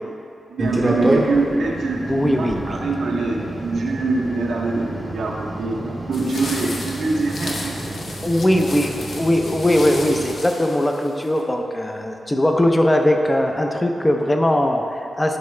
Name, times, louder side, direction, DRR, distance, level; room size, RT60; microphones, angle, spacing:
voice 1, 0.5-7.8, right 3 dB, 80° right, -1 dB, 0.9 m, -24 dB
sound 1, 0.6-10.4, right 1 dB, 15° right, 0.8 m, -29 dB
voice 2, 2.1-2.8 7.9-8.0 8.2-15.4, left 1 dB, 15° left, 3 dB, 0.5 m, -20 dB
sound 2, 6.1-11.4, left 2 dB, 60° left, 0.8 m, -34 dB
11.0 x 4.5 x 3.2 m, 2.6 s
wide cardioid pair, 140°, 0 cm